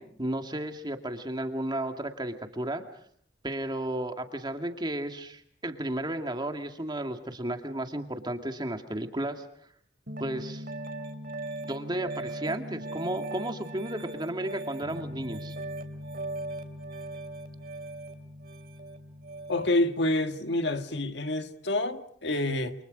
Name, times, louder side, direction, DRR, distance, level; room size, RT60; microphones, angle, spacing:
voice 1, 0.0-2.8 3.4-9.4 10.2-10.7 11.6-15.6, right 1 dB, 25° right, 2.2 m, -33 dB
Piano, 10.1-19.8, right 1 dB, 55° right, 3.2 m, -39 dB
voice 2, 19.5-22.7, left 1 dB, 70° left, 1.7 m, -28 dB
29.0 x 27.5 x 5.2 m
head